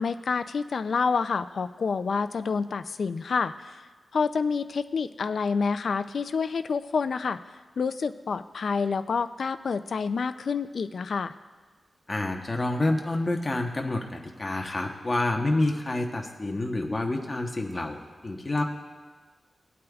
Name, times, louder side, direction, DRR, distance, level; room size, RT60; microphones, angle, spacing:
voice 1, 0.0-3.9 4.1-7.4 7.8-11.3, left 5 dB, 65° left, 11 dB, 0.4 m, -28 dB
voice 2, 12.1-18.6, left 2 dB, 25° left, 2 dB, 1.0 m, -28 dB
19.0 x 8.4 x 2.4 m, 1.4 s
wide cardioid pair, 160°, 0 cm